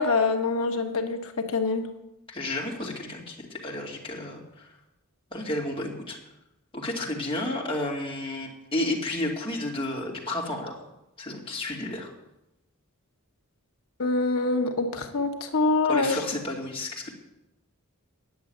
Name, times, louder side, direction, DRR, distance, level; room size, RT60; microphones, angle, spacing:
voice 1, 0.0-1.8 14.0-16.2, left 3 dB, 75° left, 5 dB, 1.3 m, -25 dB
voice 2, 2.3-4.7 5.3-6.2 6.7-10.7 11.2-12.1 15.9-17.0, left 1 dB, 25° left, -2 dB, 2.6 m, -32 dB
10.0 x 7.0 x 9.1 m, 0.89 s
head